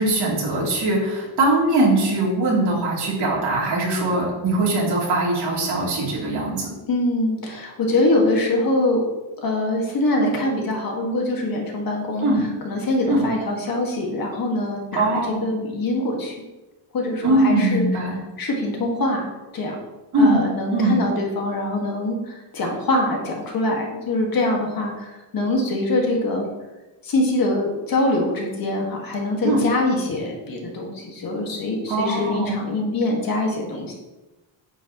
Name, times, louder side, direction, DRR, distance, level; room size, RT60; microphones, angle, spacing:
voice 1, 0.0-6.7 12.2-12.4 13.1-13.2 14.9-15.4 17.2-18.1 20.1-20.4 20.7-21.0 29.4-29.6 31.9-32.5, right 2 dB, 50° right, -4 dB, 3.2 m, -21 dB
voice 2, 6.9-9.1 9.4-16.4 16.9-17.8 18.4-19.3 19.5-19.8 20.2-26.5 27.0-33.9, left 2 dB, 45° left, 0 dB, 2.0 m, -24 dB
9.8 x 8.2 x 3.1 m, 1.1 s
cardioid pair, 165°, 49 cm